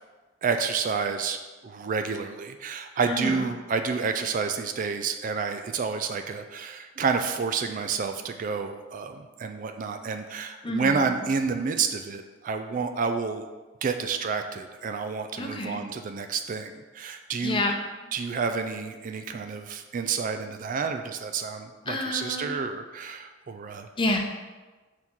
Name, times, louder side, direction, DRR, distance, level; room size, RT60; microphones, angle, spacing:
voice 1, 0.4-1.4 1.6-13.5 13.8-17.6 18.1-23.9, right 5 dB, 40° right, 7 dB, 0.3 m, -29 dB
voice 2, 3.0-3.5 10.6-11.2 15.4-15.8 17.4-17.7 21.9-22.6 24.0-24.2, left 1 dB, 25° left, 1 dB, 0.7 m, -29 dB
4.5 x 4.4 x 5.4 m, 1.3 s
head